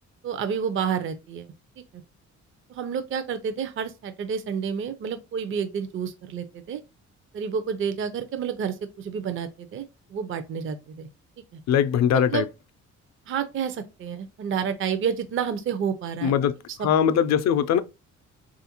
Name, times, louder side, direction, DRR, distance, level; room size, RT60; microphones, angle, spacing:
voice 1, 0.2-1.5 1.9-2.0 2.7-6.8 7.3-11.1 11.5-11.6 12.1-12.4 13.3-16.3 16.7-16.9, right 7 dB, 45° right, 0.5 m, -30 dB
voice 2, 11.7-12.5 16.2-16.5 16.8-17.8, left 8 dB, 60° left, 0.4 m, -21 dB
3.4 x 2.5 x 2.8 m
cardioid pair, 90°, 30 cm